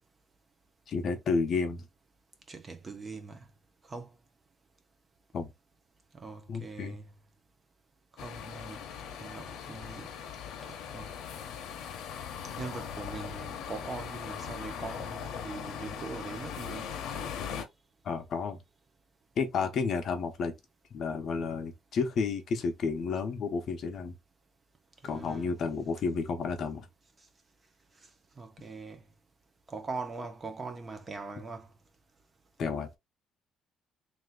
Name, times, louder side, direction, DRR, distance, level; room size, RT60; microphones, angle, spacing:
voice 1, 0.9-1.9 5.3-5.5 6.5-7.0 18.0-18.6 19.4-20.5 20.9-24.1 25.0-26.9 32.6-32.9, left 5 dB, 50° left, 0.9 m, -31 dB
voice 2, 2.5-3.5 3.9-4.1 6.1-7.1 8.2-8.8 9.2-10.1 10.6-11.1 12.6-16.9 25.0-25.5 28.4-29.0 29.7-31.7, right 4 dB, 25° right, 0.7 m, -41 dB
sound 1, 8.2-17.6, left 8 dB, 75° left, 0.9 m, -40 dB
3.3 x 2.9 x 3.7 m
cardioid pair, 150°, 0 cm